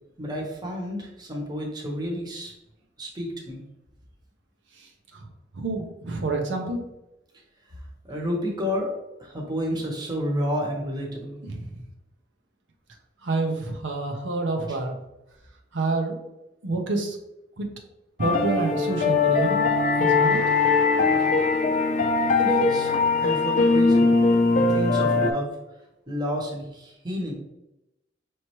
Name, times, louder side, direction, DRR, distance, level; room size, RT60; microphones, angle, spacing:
voice 1, 0.2-2.5 3.0-3.6 7.6-8.9 9.2-11.4 14.7-14.8 22.3-24.1 24.6-27.3, equal, 20° right, -1 dB, 1.0 m, -30 dB
voice 2, 4.7-5.3 5.5-6.8 11.4-11.8 13.2-14.9 15.7-16.2 16.6-17.2 17.6-17.7 18.2-20.4, right 3 dB, 90° right, 2 dB, 0.8 m, -28 dB
sound 1, 18.2-25.3, left 4 dB, 40° left, 0.5 m, -21 dB
5.6 x 3.1 x 3.0 m, 0.91 s
head